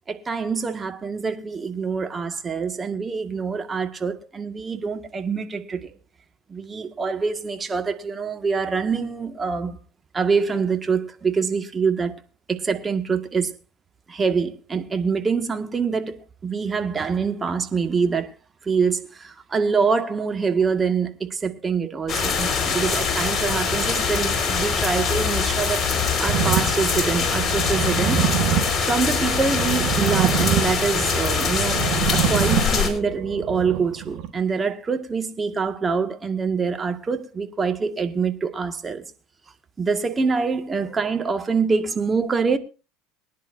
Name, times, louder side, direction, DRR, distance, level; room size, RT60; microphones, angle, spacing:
voice 1, 0.1-5.9 6.5-9.8 10.1-12.2 12.5-13.5 14.1-18.3 18.6-25.9 26.2-28.3 28.8-31.8 32.1-39.0 39.8-42.6, right 5 dB, 25° right, 1.8 m, -25 dB
sound 1, 22.1-32.9, left 5 dB, 30° left, 4.7 m, -23 dB
bass(reverb+reverse), 26.3-34.3, right 10 dB, 55° right, 2.4 m, -26 dB
23.5 x 10.5 x 2.7 m
hypercardioid pair, 75°, 0 cm